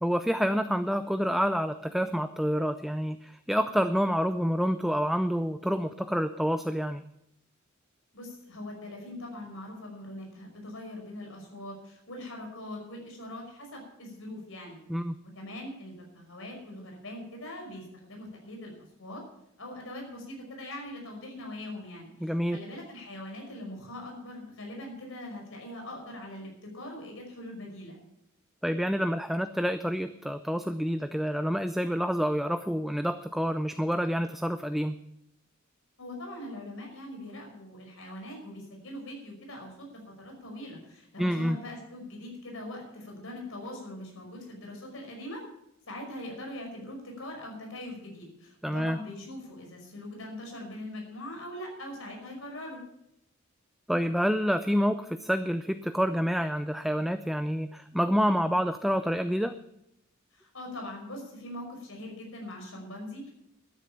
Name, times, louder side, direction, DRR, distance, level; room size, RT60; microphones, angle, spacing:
voice 1, 0.0-7.0 14.9-15.2 22.2-22.6 28.6-35.0 41.2-41.6 48.6-49.0 53.9-59.6, equal, ahead, 10 dB, 0.4 m, -28 dB
voice 2, 8.1-14.8 15.4-19.2 19.6-28.0 36.0-45.4 45.9-52.8 60.3-63.3, left 1 dB, 70° left, 2 dB, 5.5 m, -42 dB
13.0 x 10.5 x 6.9 m, 0.80 s
head